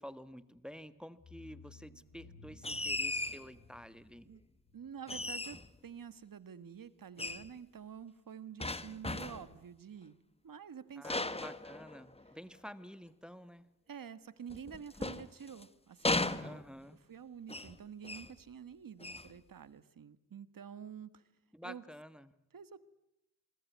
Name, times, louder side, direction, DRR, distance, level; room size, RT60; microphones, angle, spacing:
voice 1, 0.0-4.3 11.0-13.7 16.4-17.0 21.5-22.3, equal, 5° right, 13 dB, 1.3 m, -50 dB
sound 1, 0.6-0.8 1.2-5.8, left 2 dB, 55° left, 5.8 m, -57 dB
sound 2, 2.6-3.5 5.1-5.8 7.2-7.5 8.6-9.5 11.0-12.3 14.5-15.6 16.0-16.9 17.5-17.8 18.0-18.4 19.0-19.3, left 2 dB, 20° left, 1.2 m, -37 dB
voice 2, 4.7-5.6 5.8-10.1 10.4-11.5 13.9-16.6 17.1-21.2 21.6-21.8 22.5-22.8, right 8 dB, 80° right, 14 dB, 1.5 m, -48 dB
27.5 x 21.5 x 9.4 m, 0.84 s
wide cardioid pair, 80°, 33 cm